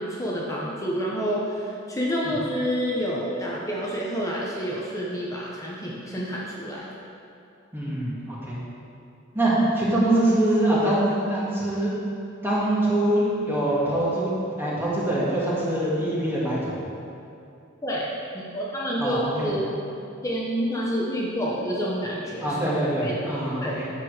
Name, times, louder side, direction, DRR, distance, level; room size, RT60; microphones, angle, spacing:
voice 1, 0.0-6.9 17.8-19.6 20.2-22.6 23.0-23.9, equal, 15° left, -5 dB, 1.0 m, -28 dB
voice 2, 7.7-8.6 9.3-11.9 12.4-16.8 19.0-19.5 22.4-23.9, right 1 dB, 10° right, -7 dB, 2.0 m, -24 dB
9.0 x 6.9 x 5.0 m, 2.6 s
head